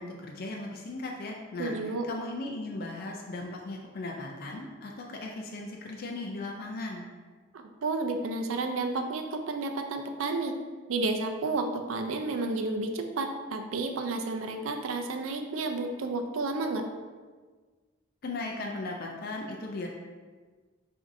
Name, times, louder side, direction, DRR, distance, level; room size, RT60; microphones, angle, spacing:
voice 1, 0.0-7.1 18.2-19.9, left 2 dB, 45° left, 0 dB, 0.4 m, -37 dB
voice 2, 1.6-2.1 7.5-10.5 10.9-16.8, right 3 dB, 75° right, 5 dB, 0.4 m, -31 dB
7.7 x 2.6 x 2.6 m, 1.4 s
head